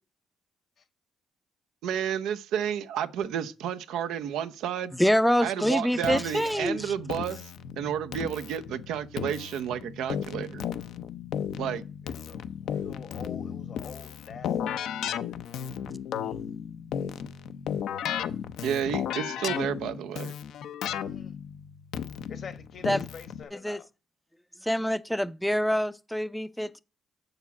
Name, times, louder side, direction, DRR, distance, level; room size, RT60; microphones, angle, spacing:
voice 1, 1.8-4.9 5.4-10.6 11.6-11.8 18.6-20.3, right 9 dB, 85° right, 0.7 m, -31 dB
voice 2, 5.0-6.9 15.9-16.3 22.8-23.0 23.6-23.8 24.6-26.8, equal, ahead, 0.5 m, -26 dB
Keyboard (musical), 6.0-23.4, left 9 dB, 80° left, 0.7 m, -35 dB
voice 3, 12.0-15.4 20.8-21.4 22.3-23.9, left 6 dB, 55° left, 1.1 m, -47 dB
7.1 x 6.6 x 5.9 m
cardioid pair, 90°, 0 cm